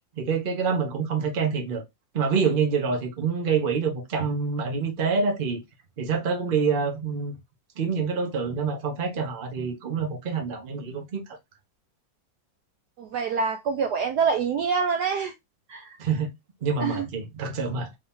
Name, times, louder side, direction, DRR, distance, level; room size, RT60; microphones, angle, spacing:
voice 1, 0.2-1.8 2.1-5.6 6.0-7.4 7.8-11.2 16.0-16.3 16.6-17.9, right 5 dB, 40° right, 0.8 m, -26 dB
voice 2, 13.0-15.3 15.7-16.0 16.8-17.1, right 5 dB, 70° right, 1.0 m, -26 dB
3.5 x 2.8 x 3.5 m
omnidirectional pair, 2.1 m